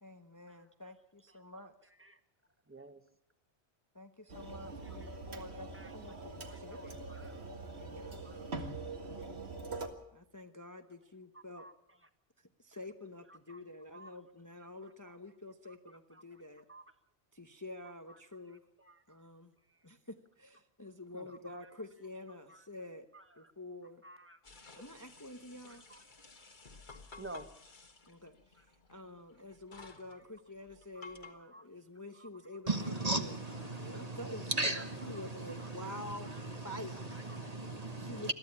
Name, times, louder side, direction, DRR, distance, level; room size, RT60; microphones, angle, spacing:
voice 1, 0.0-1.7 3.9-7.0 7.8-8.3 8.9-9.3 10.1-11.7 12.6-16.6 17.3-18.6 19.1-19.5 19.8-23.1 23.4-24.0 24.8-25.8 28.1-28.4 28.9-33.3 33.8-36.3 36.6-37.1 38.0-38.3, left 1 dB, 15° left, 6 dB, 0.9 m, -48 dB
voice 2, 2.7-3.0 5.0-5.1 5.7-5.9 6.5-7.3 8.1-8.5 11.3-11.7 13.3-13.6 13.9-14.1 16.1-16.4 16.7-16.8 18.1-18.2 18.8-19.0 21.1-21.6 22.5-22.6 23.1-23.5 24.0-24.4 25.7-26.0 27.2-27.5 28.6-28.7 30.1-30.2 30.9-31.1 31.3-31.6 32.1-32.3 33.7-33.8 35.6-35.7 37.3-37.4, right 2 dB, 10° right, 8 dB, 1.3 m, -52 dB
sound 1, 4.3-9.9, right 3 dB, 65° right, 2.1 m, -43 dB
sound 2, 24.4-31.3, left 3 dB, 45° left, 1.7 m, -55 dB
voice 3, 32.7-38.3, right 2 dB, 35° right, 7 dB, 1.3 m, -37 dB
22.0 x 14.5 x 8.6 m, 0.76 s
omnidirectional pair, 1.2 m